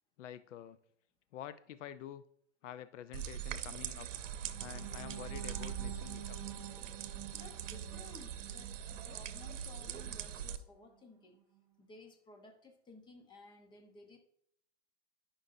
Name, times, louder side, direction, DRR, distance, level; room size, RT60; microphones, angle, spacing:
voice 1, 0.2-0.8 1.3-2.2 2.6-4.1 4.6-6.4, left 11 dB, 75° left, 14 dB, 0.7 m, -48 dB
sound 1, 3.1-10.6, right 9 dB, 85° right, 0.8 m, -42 dB
sound 2, 4.4-10.4 10.8-11.0 11.4-11.6, right 10 dB, 10° right, 1.0 m, -50 dB
voice 2, 7.3-8.8 9.1-11.4 11.8-14.2, left 3 dB, 10° left, 5 dB, 0.9 m, -56 dB
13.0 x 5.6 x 2.7 m, 0.68 s
supercardioid pair, 150°, 37 cm